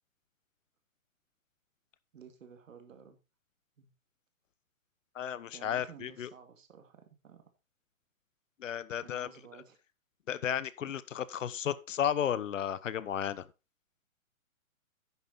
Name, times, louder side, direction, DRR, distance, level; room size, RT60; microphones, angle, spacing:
voice 1, 2.1-3.2 3.8-3.9 5.5-7.4 9.0-9.8 10.8-11.0, right 7 dB, 65° right, 2.3 m, -53 dB
voice 2, 5.1-6.3 8.6-9.3 10.3-13.4, left 9 dB, 65° left, 1.0 m, -33 dB
10.5 x 7.0 x 4.0 m
hypercardioid pair, 135°, 41 cm